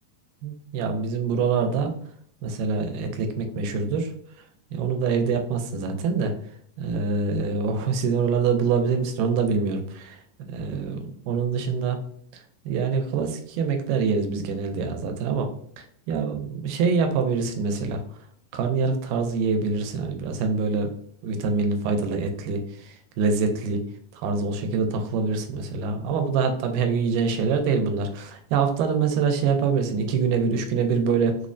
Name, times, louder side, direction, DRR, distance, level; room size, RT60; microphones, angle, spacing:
voice 1, 0.4-1.9 2.4-4.1 4.7-6.4 6.8-10.2 10.5-12.0 12.7-15.5 15.8-18.0 18.5-20.9 21.2-23.8 24.1-31.4, right 5 dB, 85° right, 5 dB, 2.1 m, -25 dB
5.7 x 2.1 x 2.5 m, 0.65 s
omnidirectional pair, 3.7 m